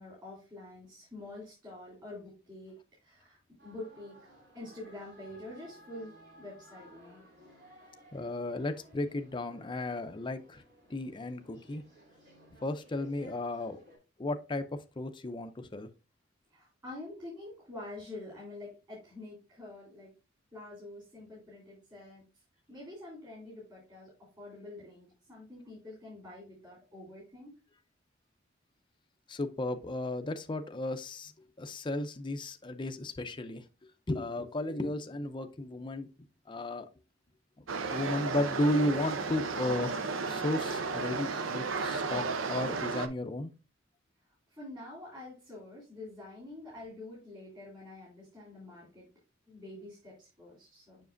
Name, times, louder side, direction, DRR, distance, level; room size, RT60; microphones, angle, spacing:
voice 1, 0.0-2.7 3.0-4.1 4.5-7.2 16.5-20.1 20.5-22.2 22.7-24.1 24.4-27.5 44.5-49.1 49.5-51.0, left 2 dB, 25° right, 3.3 m, -47 dB
sound 1, 3.6-14.0, equal, 60° right, 2.7 m, -58 dB
voice 2, 8.1-10.6 10.9-11.8 12.6-13.8 14.2-14.6 15.0-15.9 29.3-31.3 31.6-33.6 34.1-36.1 36.5-36.9 37.9-43.5, left 1 dB, 25° left, 0.5 m, -34 dB
sound 2, 37.7-43.1, right 4 dB, 85° right, 0.7 m, -34 dB
7.2 x 5.9 x 2.5 m
head